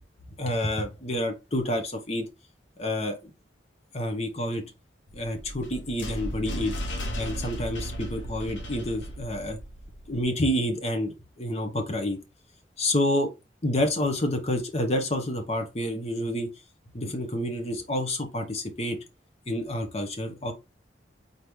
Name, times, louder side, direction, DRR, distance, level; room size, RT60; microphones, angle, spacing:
voice 1, 0.4-2.3 2.8-3.3 3.9-4.6 5.1-6.7 7.2-9.6 10.1-12.2 12.8-13.3 13.6-16.5 16.9-19.0 19.5-20.5, left 1 dB, 35° left, 0.9 m, -28 dB
sound 1, 5.1-10.2, equal, 80° left, 1.0 m, -35 dB
4.0 x 3.1 x 3.5 m
head